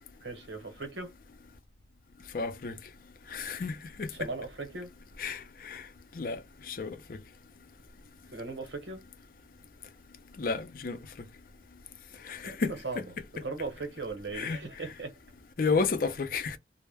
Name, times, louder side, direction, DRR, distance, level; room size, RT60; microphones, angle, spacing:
voice 1, 0.2-1.1 4.1-4.9 8.3-9.0 12.4-13.0 13.4-15.1, right 3 dB, 85° right, 0.9 m, -38 dB
voice 2, 2.3-2.7 3.3-4.1 5.2-5.8 6.2-6.4 6.7-7.2 10.4-11.0 12.3-12.7 14.3-14.6 15.6-16.6, left 4 dB, 50° left, 0.4 m, -31 dB
2.2 x 2.0 x 3.3 m
head